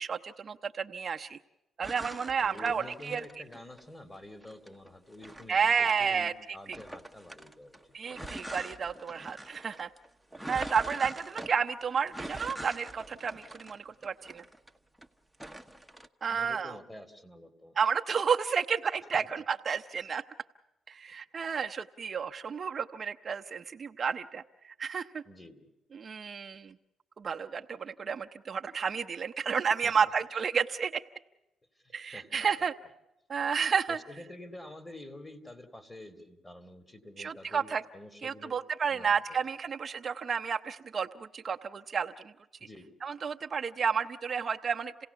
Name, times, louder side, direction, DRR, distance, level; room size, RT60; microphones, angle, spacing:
voice 1, 0.0-1.4 1.8-3.2 5.5-6.3 6.7-6.8 7.9-9.9 10.5-14.4 16.2-16.8 17.8-20.2 20.9-25.2 25.9-26.7 27.2-31.0 31.9-32.7 33.3-34.0 37.2-37.8 38.2-42.3 43.0-44.9, right 6 dB, 45° right, 5 dB, 0.7 m, -31 dB
sound 1, 1.8-3.8 4.4-6.3 6.7-15.1 15.3-16.1, right 1 dB, ahead, 1.1 m, -44 dB
voice 2, 2.4-8.0 16.2-17.8 19.1-19.3 25.3-25.7 29.8-30.1 31.8-32.7 33.9-38.6 38.9-39.4 42.6-43.0, left 1 dB, 15° left, 10 dB, 2.6 m, -48 dB
28.0 x 17.5 x 7.0 m, 0.96 s
cardioid pair, 95°, 0 cm